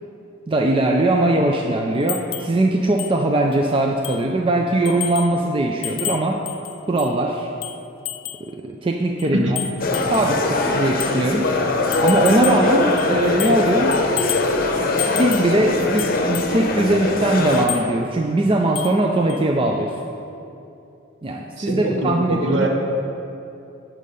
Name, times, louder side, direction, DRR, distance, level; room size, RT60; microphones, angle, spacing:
voice 1, 0.5-6.4 6.9-7.5 8.4-9.5 10.1-11.5 12.0-14.0 14.7-19.9 21.2-22.7, right 1 dB, 25° right, 1 dB, 0.4 m, -20 dB
sound 1, 2.1-2.5 3.0-3.1 3.5-3.6 4.0-4.3 4.8-5.4 5.8-7.2 7.6-8.5 9.2-10.3 11.0-11.2 11.9-12.7 13.0-13.7 13.9-14.5 15.0-15.5 16.0-16.5 17.5-17.9 18.7-19.0 19.3-19.4, left 13 dB, 75° left, 0.4 m, -30 dB
sound 2, 9.8-17.6, left 2 dB, 45° left, 0.8 m, -21 dB
voice 2, 21.6-22.7, right 1 dB, 65° right, 1 dB, 1.2 m, -23 dB
8.3 x 7.5 x 5.3 m, 2.7 s
head